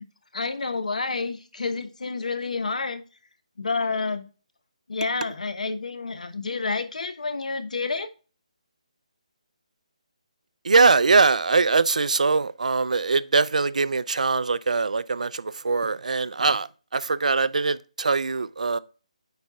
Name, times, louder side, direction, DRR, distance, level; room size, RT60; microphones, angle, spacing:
voice 1, 0.3-3.0 3.6-4.3 4.9-8.1, left 4 dB, 85° left, 1.0 m, -29 dB
voice 2, 10.6-18.8, right 4 dB, 80° right, 0.5 m, -22 dB
9.4 x 4.2 x 2.4 m
hypercardioid pair, 180°, 4 cm